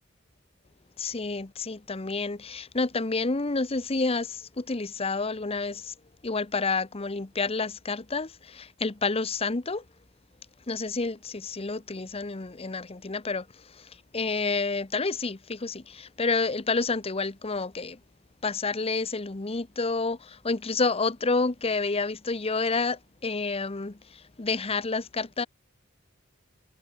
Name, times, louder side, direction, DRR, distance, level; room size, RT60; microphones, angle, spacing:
voice 1, 1.0-5.9 6.2-9.8 10.7-18.0 18.4-25.5, left 3 dB, 30° left, 0.9 m, -29 dB
head